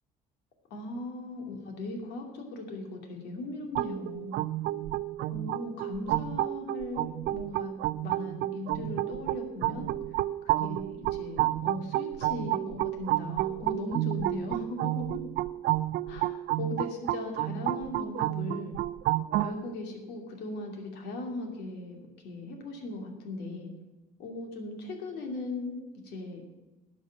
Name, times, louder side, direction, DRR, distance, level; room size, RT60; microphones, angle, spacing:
voice 1, 0.7-4.4 5.3-7.7 8.0-9.9 10.6-15.1 16.1-18.8 19.4-23.7 24.2-26.4, left 2 dB, 80° left, 2 dB, 2.7 m, -38 dB
sound 1, 3.8-19.5, right 16 dB, 75° right, 0.5 m, -31 dB
11.5 x 6.4 x 8.8 m, 1.0 s
cardioid pair, 110°, 17 cm